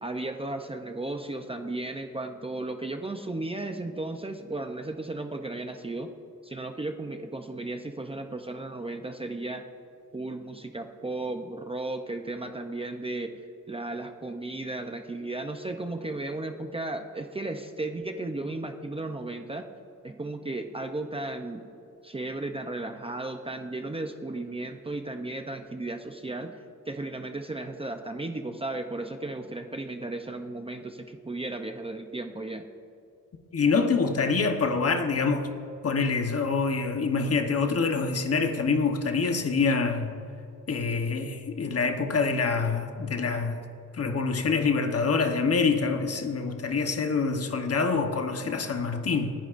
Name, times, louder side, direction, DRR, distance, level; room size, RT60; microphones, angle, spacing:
voice 1, 0.0-6.1 6.4-9.6 10.1-13.4 13.7-19.7 20.0-21.7 22.0-26.6 26.9-32.6, right 2 dB, 20° right, 0.5 m, -35 dB
voice 2, 33.5-35.5 35.8-40.2 40.7-43.6 43.9-49.3, left 4 dB, 45° left, 1.0 m, -26 dB
28.5 x 10.5 x 2.5 m
wide cardioid pair, 175°, 32 cm